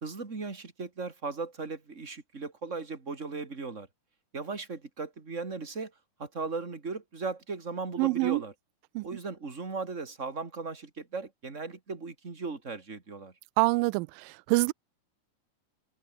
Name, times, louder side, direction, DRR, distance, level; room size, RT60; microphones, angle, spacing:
voice 1, 0.0-3.9 4.3-5.9 6.2-8.5 9.0-13.3, right 4 dB, 20° right, 2.5 m, -37 dB
voice 2, 8.0-8.4 9.0-9.1 13.6-14.7, right 24 dB, 80° right, 2.1 m, -26 dB
open air
omnidirectional pair, 4.2 m